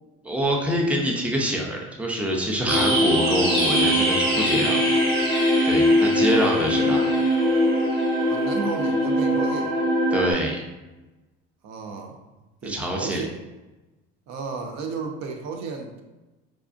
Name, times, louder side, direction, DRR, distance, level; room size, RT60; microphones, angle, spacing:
voice 1, 0.2-4.8 5.6-7.1 10.1-10.6 12.6-13.2, equal, 5° right, 0 dB, 0.6 m, -25 dB
sound 1, 2.7-10.3, equal, 80° right, 1.4 m, -21 dB
voice 2, 8.3-9.7 11.6-12.2 12.6-13.4 14.3-16.0, right 4 dB, 60° right, 3 dB, 0.7 m, -33 dB
4.8 x 2.3 x 2.5 m, 1.1 s
supercardioid pair, 85°, 31 cm